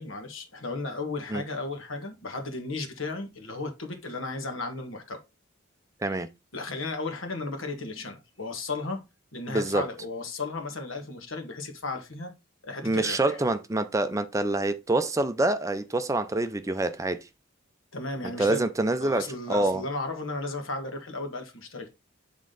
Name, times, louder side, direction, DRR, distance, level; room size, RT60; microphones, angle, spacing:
voice 1, 0.0-5.2 6.5-9.0 9.3-12.3 12.6-13.4 17.9-18.7 19.0-21.9, left 3 dB, 80° left, 1.6 m, -35 dB
voice 2, 9.5-9.9 12.8-17.3 18.4-19.8, right 2 dB, 15° right, 0.4 m, -26 dB
8.5 x 3.7 x 3.8 m
head